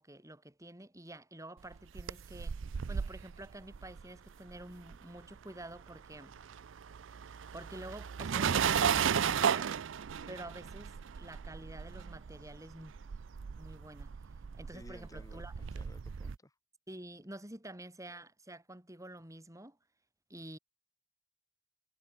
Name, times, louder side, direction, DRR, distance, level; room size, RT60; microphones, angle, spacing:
voice 1, 0.0-2.6 2.9-6.4 7.5-9.7 10.3-12.9 13.6-14.1 14.5-15.5 16.9-19.8 20.3-20.6, right 1 dB, 15° right, 6.0 m, -48 dB
sound 1, 1.7-5.4 5.6-16.4, right 7 dB, 85° right, 0.5 m, -35 dB
voice 2, 14.7-16.6, left 1 dB, 20° left, 2.6 m, -55 dB
head